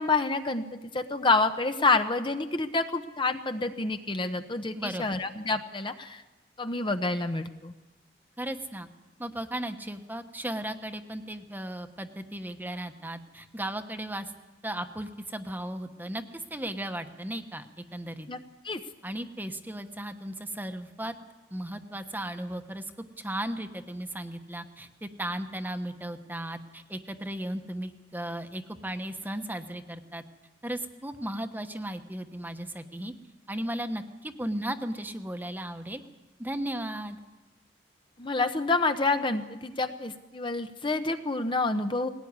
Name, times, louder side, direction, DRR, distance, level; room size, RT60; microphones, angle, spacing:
voice 1, 0.0-6.2 6.6-7.7 18.3-18.4 18.6-18.8 38.2-42.1, left 3 dB, 30° left, 8 dB, 0.8 m, -28 dB
voice 2, 4.7-5.1 8.4-8.9 9.2-14.3 14.6-17.7 17.9-18.3 19.0-21.1 21.5-22.8 23.2-30.2 30.6-33.1 33.5-36.0 36.4-37.2, right 1 dB, 10° right, 8 dB, 1.1 m, -36 dB
19.5 x 17.5 x 9.6 m, 1.1 s
head